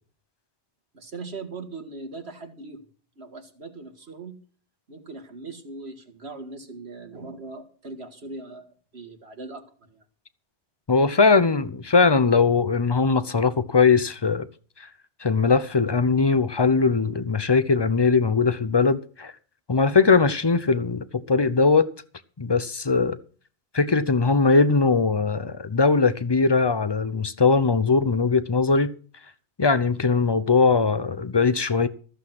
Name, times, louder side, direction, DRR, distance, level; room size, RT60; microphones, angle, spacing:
voice 1, 0.9-2.8 3.2-4.4 4.9-10.0, right 3 dB, 65° right, 2.0 m, -40 dB
voice 2, 10.9-14.5 14.8-14.9 15.2-19.3 19.7-21.9 22.4-23.2 23.7-28.9 29.6-31.9, left 4 dB, 30° left, 0.6 m, -20 dB
14.5 x 7.9 x 6.0 m
omnidirectional pair, 1.2 m